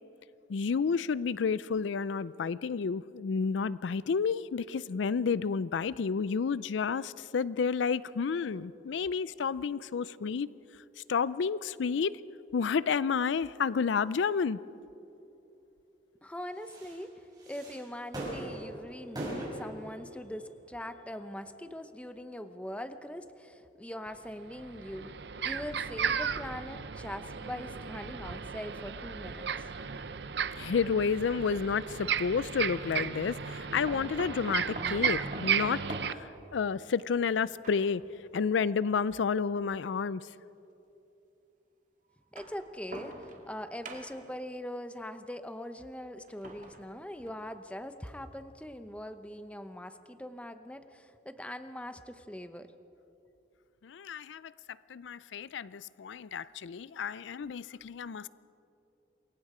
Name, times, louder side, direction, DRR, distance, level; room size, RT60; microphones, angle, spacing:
voice 1, 0.5-10.5 11.1-12.1 12.5-14.6 30.6-35.8 36.1-38.0 38.3-40.3 53.8-54.5 54.9-58.3, left 5 dB, 75° left, 0.4 m, -30 dB
sound 1, 8.5-8.6 11.2-11.3 14.0-14.1 16.4-23.5 24.1-24.4, right 1 dB, 20° right, 5.9 m, -43 dB
voice 2, 16.2-25.1 25.4-29.5 42.3-52.7, left 1 dB, 5° left, 0.8 m, -42 dB
sound 2, 24.1-24.2 24.5-36.1, right 7 dB, 60° right, 0.7 m, -34 dB
sound 3, 31.4-31.6 33.9-38.1 39.1-39.2 40.4-40.5 42.1-43.6 43.8-44.4 46.2-47.6 48.1-48.2 48.5-48.6, right 1 dB, 45° right, 2.4 m, -45 dB
28.0 x 22.5 x 4.9 m
head